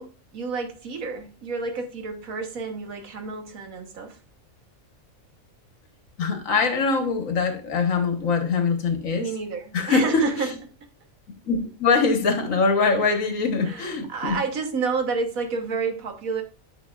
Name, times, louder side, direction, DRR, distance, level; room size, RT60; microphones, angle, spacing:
voice 1, 0.0-4.2 9.2-10.5 12.8-13.0 13.6-16.4, right 4 dB, 85° right, 1.6 m, -30 dB
voice 2, 6.2-9.3 9.7-10.3 11.4-14.4, left 4 dB, 70° left, 1.6 m, -23 dB
9.7 x 5.6 x 2.4 m
omnidirectional pair, 1.4 m